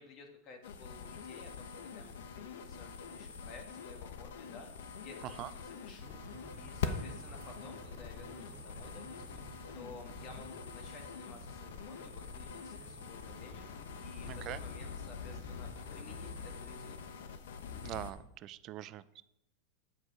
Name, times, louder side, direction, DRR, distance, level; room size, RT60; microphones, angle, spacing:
voice 1, 0.0-6.2 6.5-17.0, left 4 dB, 35° left, 4 dB, 1.5 m, -54 dB
sound 1, 0.6-18.1, left 6 dB, 85° left, 0.9 m, -44 dB
sound 2, 6.0-16.5, right 4 dB, 70° right, 1.7 m, -55 dB
voice 2, 14.3-14.6 17.8-19.2, right 13 dB, 35° right, 14 dB, 0.3 m, -43 dB
8.0 x 7.6 x 4.7 m, 0.84 s
supercardioid pair, 160°, 0 cm